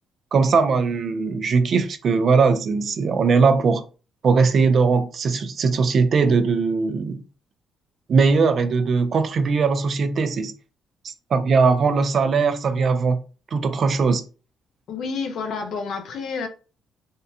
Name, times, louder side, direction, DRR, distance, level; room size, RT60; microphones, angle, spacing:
voice 1, 0.3-3.8 4.2-7.2 8.1-10.5 11.0-13.2 13.5-14.2, right 4 dB, 55° right, 0.4 m, -20 dB
voice 2, 14.9-16.5, left 5 dB, 70° left, 0.7 m, -29 dB
3.6 x 2.1 x 2.7 m
cardioid pair, 90°, 0 cm